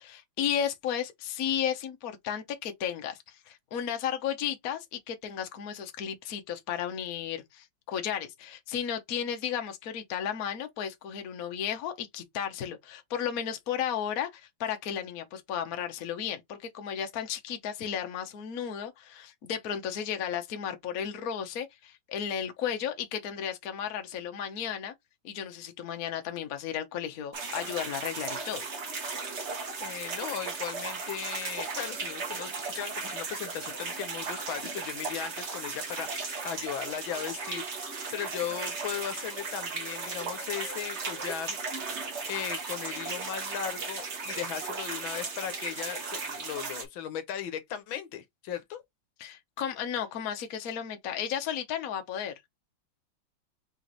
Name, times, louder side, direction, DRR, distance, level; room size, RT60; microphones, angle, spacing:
voice 1, 0.0-24.9 25.2-28.6 49.2-52.3, left 9 dB, 55° left, 1.2 m, -34 dB
sound 1, 27.3-46.9, right 4 dB, 40° right, 1.2 m, -36 dB
voice 2, 29.8-41.6 41.8-48.8, left 9 dB, 80° left, 1.6 m, -37 dB
4.1 x 3.1 x 3.9 m
omnidirectional pair, 2.2 m